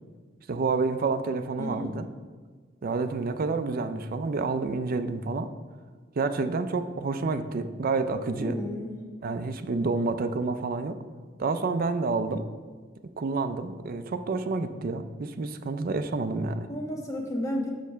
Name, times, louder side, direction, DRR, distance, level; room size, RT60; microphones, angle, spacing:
voice 1, 0.5-2.1 2.8-5.5 6.2-8.6 9.2-11.0 11.4-12.5 13.2-16.7, right 3 dB, 50° right, 10 dB, 0.4 m, -29 dB
voice 2, 1.6-1.9 8.3-9.0 16.7-17.7, left 1 dB, 15° left, -1 dB, 1.2 m, -32 dB
6.4 x 5.2 x 5.6 m, 1.5 s
head